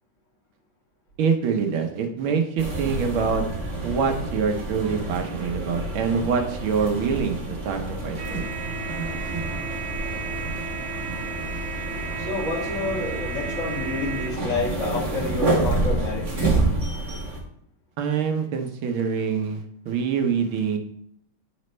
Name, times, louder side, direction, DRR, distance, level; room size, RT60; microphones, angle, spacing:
voice 1, 1.2-3.4 3.8-8.5 9.3-9.5 18.0-20.8, right 6 dB, 85° right, 5 dB, 1.8 m, -25 dB
sound 1, 2.6-17.4, right 2 dB, 40° right, 1.7 m, -28 dB
voice 2, 12.2-16.7, left 2 dB, 40° left, -6 dB, 2.9 m, -29 dB
10.0 x 5.2 x 3.2 m, 0.67 s
omnidirectional pair, 2.2 m